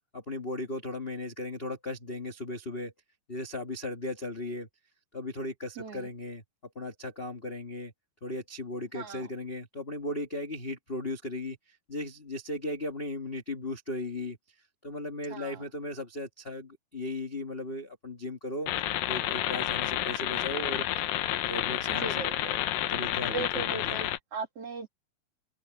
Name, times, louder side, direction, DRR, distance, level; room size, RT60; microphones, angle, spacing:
voice 1, 0.1-2.9 3.3-4.7 5.1-6.4 6.7-7.9 8.2-11.6 11.9-14.4 14.8-18.7 19.0-20.8 21.5-22.3 22.9-24.1, left 2 dB, 45° left, 0.7 m, -36 dB
voice 2, 5.8-6.1 8.9-9.3 15.3-15.6 21.9-22.6 23.3-24.9, right 4 dB, 50° right, 2.6 m, -38 dB
sound 1, 18.7-24.2, left 13 dB, 80° left, 2.7 m, -30 dB
open air
omnidirectional pair, 4.1 m